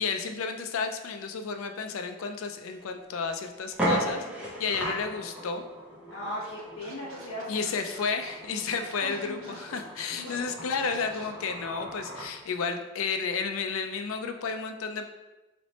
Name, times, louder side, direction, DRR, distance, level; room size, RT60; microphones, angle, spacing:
voice 1, 0.0-5.6 7.5-15.1, left 5 dB, 85° left, 6 dB, 0.4 m, -32 dB
sound 1, 2.7-2.8 3.3-3.4 3.7-12.3, equal, 5° right, 0.6 m, -36 dB
voice 2, 6.1-7.5 9.0-9.6 10.1-10.4, equal, 65° left, -7 dB, 0.8 m, -38 dB
Scratching (performance technique), 6.4-11.3, right 3 dB, 85° right, 0.6 m, -51 dB
3.3 x 3.0 x 4.0 m, 1.1 s
head